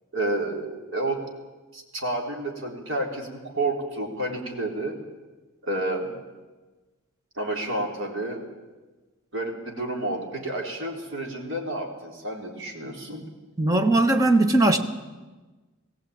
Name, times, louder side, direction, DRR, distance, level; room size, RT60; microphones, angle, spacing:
voice 1, 0.1-1.2 1.7-5.0 5.6-6.2 7.4-8.4 9.3-13.2, right 2 dB, 60° right, 1 dB, 3.7 m, -30 dB
voice 2, 13.6-14.8, right 2 dB, 15° right, 6 dB, 1.3 m, -19 dB
20.0 x 16.0 x 8.7 m, 1.2 s
head